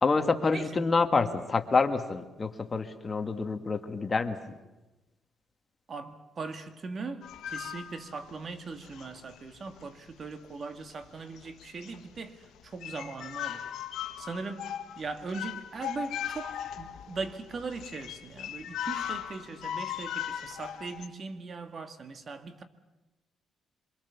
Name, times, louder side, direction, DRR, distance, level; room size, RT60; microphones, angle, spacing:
voice 1, 0.0-4.6, left 4 dB, 30° left, 1.8 m, -27 dB
voice 2, 5.9-13.7 14.2-22.6, right 4 dB, 45° right, 1.9 m, -40 dB
sound 1, 7.2-8.3 8.8-9.4 9.8-9.9 10.9-11.0 11.3-12.2 12.4-12.5 12.8-21.1, left 10 dB, 80° left, 1.6 m, -38 dB
25.5 x 23.5 x 7.1 m
cardioid pair, 90°, 0 cm